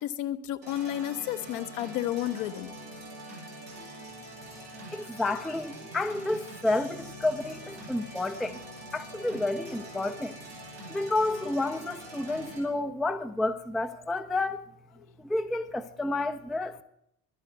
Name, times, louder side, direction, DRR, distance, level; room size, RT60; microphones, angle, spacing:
voice 1, 0.0-2.7, left 12 dB, 55° left, 0.9 m, -32 dB
sound 1, 0.6-12.6, right 1 dB, 90° right, 4.3 m, -44 dB
voice 2, 4.9-8.6 8.9-10.4 10.9-14.6 15.2-16.8, left 2 dB, ahead, 0.4 m, -30 dB
11.5 x 8.6 x 8.0 m
figure-of-eight pair, 55°, 50 cm